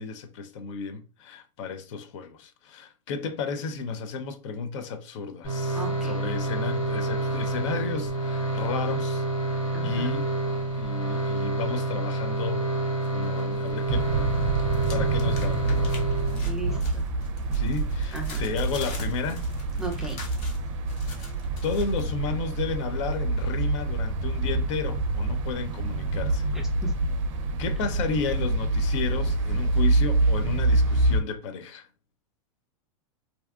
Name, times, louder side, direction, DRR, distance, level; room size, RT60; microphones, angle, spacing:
voice 1, 0.0-10.3 10.7-12.7 13.1-14.3 14.9-15.9 17.5-19.5 21.6-26.5 27.6-31.9, left 5 dB, 65° left, 0.5 m, -33 dB
sound 1, 5.4-16.8, right 2 dB, 85° left, 0.9 m, -28 dB
voice 2, 5.7-6.3 9.7-10.1 16.4-17.0 18.1-18.4 19.8-20.2 26.5-26.9, right 3 dB, 5° right, 0.5 m, -36 dB
sound 2, 13.0-13.9 14.2-22.0, left 3 dB, 45° left, 0.9 m, -44 dB
sound 3, 13.9-31.2, right 2 dB, 70° right, 0.4 m, -26 dB
2.6 x 2.3 x 2.3 m
supercardioid pair, 135°, 17 cm